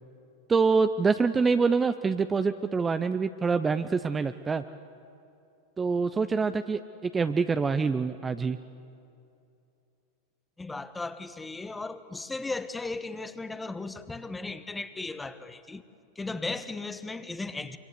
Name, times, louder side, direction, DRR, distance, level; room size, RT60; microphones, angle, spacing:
voice 1, 0.5-4.6 5.8-8.6, right 4 dB, 15° right, 0.7 m, -25 dB
voice 2, 10.6-15.8 16.1-17.8, left 3 dB, 10° left, 1.2 m, -36 dB
26.0 x 25.5 x 8.1 m
figure-of-eight pair, 90°, 0 cm